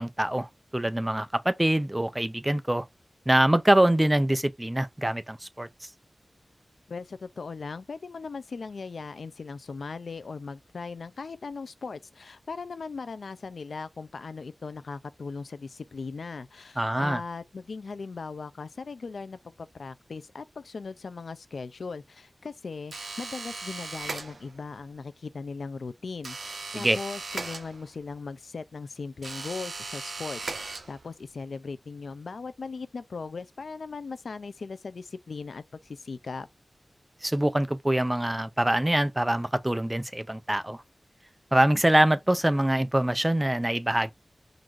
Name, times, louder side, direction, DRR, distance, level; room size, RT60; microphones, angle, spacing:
voice 1, 0.0-2.9 3.3-5.7 16.8-17.2 26.7-27.0 37.2-40.8 41.5-44.1, right 1 dB, 15° right, 0.5 m, -24 dB
voice 2, 6.9-36.5, left 4 dB, 90° left, 0.4 m, -38 dB
sound 1, 22.9-24.7 26.2-28.1 29.2-31.3, right 3 dB, 75° right, 0.8 m, -38 dB
3.9 x 2.5 x 4.6 m
wide cardioid pair, 85°, 0 cm